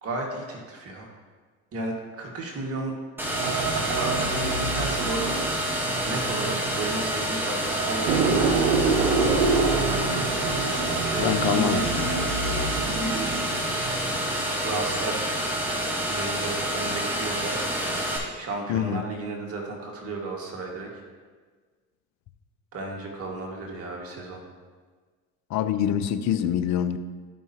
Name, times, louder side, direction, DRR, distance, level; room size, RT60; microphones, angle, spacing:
voice 1, 0.0-1.1 1.7-3.0 4.0-5.4 6.0-9.6 11.1-11.9 12.8-13.5 14.6-15.3 15.9-17.6 18.3-20.9 22.7-24.4, right 2 dB, 45° right, -1 dB, 1.9 m, -33 dB
sound 1, 3.2-18.2, equal, 5° right, 2.3 m, -28 dB
sound 2, 3.3-7.3 7.7-14.4 14.8-15.0, right 4 dB, 85° right, 1.0 m, -27 dB
voice 2, 11.2-12.1 18.7-19.0 25.5-27.0, left 10 dB, 55° left, 10 dB, 0.7 m, -25 dB
13.5 x 5.4 x 2.8 m, 1.5 s
supercardioid pair, 80°, 33 cm